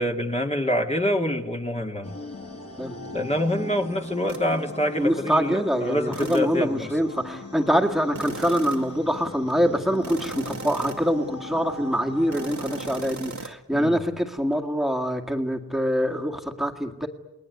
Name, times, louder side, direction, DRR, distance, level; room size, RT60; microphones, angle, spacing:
voice 1, 0.0-2.1 3.1-6.9 13.7-14.0, left 1 dB, 20° left, 2 dB, 2.1 m, -26 dB
sound 1, 2.0-12.9, left 2 dB, 45° left, 5.0 m, -40 dB
sound 2, 4.3-4.5 6.1-6.6 8.1-9.0 10.0-11.2 12.3-13.5, right 4 dB, 55° right, 2.0 m, -37 dB
voice 2, 5.0-17.1, equal, ahead, 4 dB, 2.1 m, -25 dB
29.5 x 19.5 x 9.4 m, 1.1 s
wide cardioid pair, 70°, 34 cm